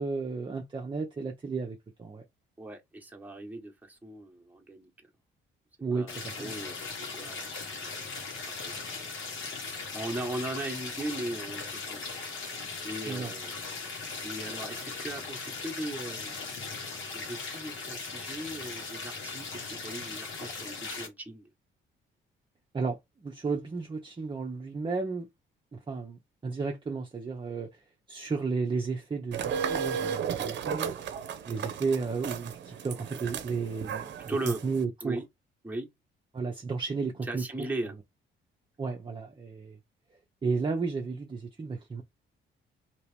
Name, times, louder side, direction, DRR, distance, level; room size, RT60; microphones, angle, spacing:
voice 1, 0.0-2.2 5.8-6.6 13.1-13.3 22.7-25.3 25.7-27.7 28.1-30.9 31.5-34.4 34.6-35.2 36.3-37.7 38.8-39.8 40.4-42.0, right 4 dB, 25° right, 0.7 m, -33 dB
voice 2, 2.6-4.9 5.9-7.5 7.8-7.9 8.6-8.7 9.4-12.2 12.8-13.6 14.2-16.4 17.1-21.5 34.3-34.6 35.0-35.2 35.6-35.9 37.3-38.0, right 1 dB, 10° right, 1.2 m, -38 dB
sound 1, 6.1-21.1, left 4 dB, 85° left, 1.5 m, -38 dB
sound 2, 29.3-34.8, right 7 dB, 65° right, 0.7 m, -34 dB
2.9 x 2.8 x 3.4 m
cardioid pair, 90°, 20 cm